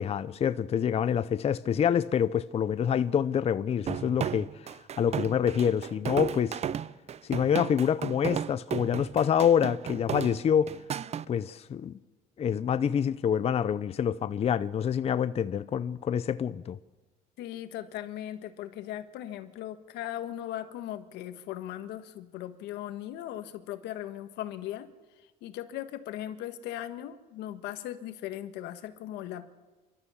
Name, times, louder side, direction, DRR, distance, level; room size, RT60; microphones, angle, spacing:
voice 1, 0.0-4.7 5.0-6.6 7.2-10.7 11.3-12.0 12.4-16.8, left 8 dB, 35° left, 0.6 m, -27 dB
sound 1, 3.9-11.3, right 8 dB, 40° right, 0.6 m, -34 dB
voice 2, 17.4-24.9 25.4-29.5, left 12 dB, 85° left, 1.5 m, -38 dB
29.0 x 13.0 x 7.2 m
cardioid pair, 110°, 17 cm